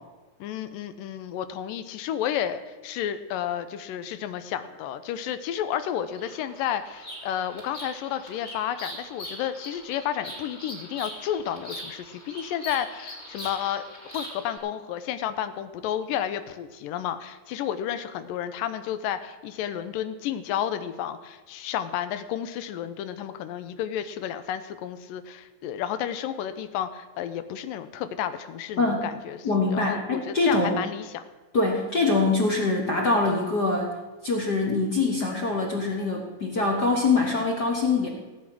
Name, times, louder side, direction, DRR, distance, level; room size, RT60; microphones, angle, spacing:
voice 1, 0.4-13.8 14.1-29.4 29.7-31.2, left 10 dB, 90° left, 11 dB, 2.3 m, -31 dB
Bird vocalization bird call bird song, 6.1-14.6, equal, 20° left, 3.3 m, -41 dB
voice 2, 28.8-29.1 29.4-30.8 31.5-33.9 34.2-38.1, left 3 dB, 60° left, 0 dB, 1.0 m, -24 dB
16.0 x 8.4 x 6.1 m, 1.3 s
omnidirectional pair, 4.0 m